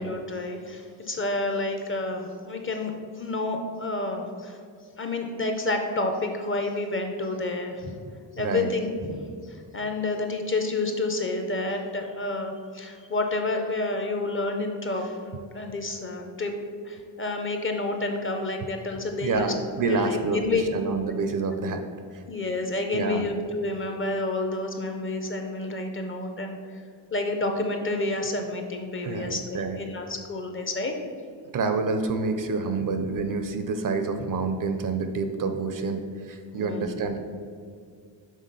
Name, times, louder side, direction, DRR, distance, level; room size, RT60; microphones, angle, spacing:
voice 1, 0.0-4.6 5.0-7.9 8.4-9.2 9.5-16.5 16.9-19.5 19.9-20.6 21.0-21.1 22.3-26.8 27.1-30.9 36.5-36.9, left 2 dB, 30° left, 4 dB, 0.5 m, -29 dB
voice 2, 8.4-8.7 19.2-20.4 20.7-21.8 22.1-22.2 22.9-23.3 29.0-29.8 31.5-37.2, right 4 dB, 45° right, 7 dB, 0.5 m, -28 dB
6.4 x 3.8 x 5.3 m, 2.2 s
wide cardioid pair, 175°, 45 cm